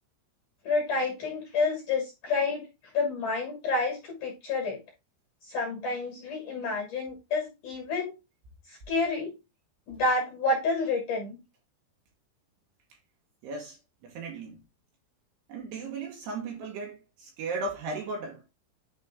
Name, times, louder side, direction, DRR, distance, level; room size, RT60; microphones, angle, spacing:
voice 1, 0.6-2.7 2.9-4.8 5.4-8.1 8.7-9.3 9.9-11.4, left 3 dB, 50° left, 3.0 m, -29 dB
voice 2, 13.4-13.8 14.0-14.6 15.5-18.5, right 3 dB, 65° right, 3.1 m, -36 dB
9.9 x 3.7 x 3.6 m
omnidirectional pair, 5.8 m